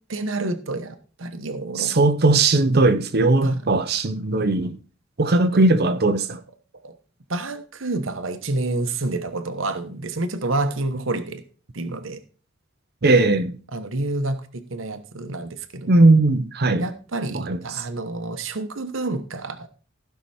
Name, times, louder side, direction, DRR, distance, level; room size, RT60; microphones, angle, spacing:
voice 1, 0.1-1.9 3.4-3.6 5.2-6.0 6.8-6.9 7.3-11.4 11.7-12.2 13.7-16.1 16.8-19.7, right 2 dB, 70° right, 1.1 m, -29 dB
voice 2, 1.8-4.7 5.2-6.4 13.0-13.5 15.9-16.8 17.3-17.6, right 2 dB, 50° right, 0.8 m, -18 dB
15.5 x 5.9 x 4.3 m
head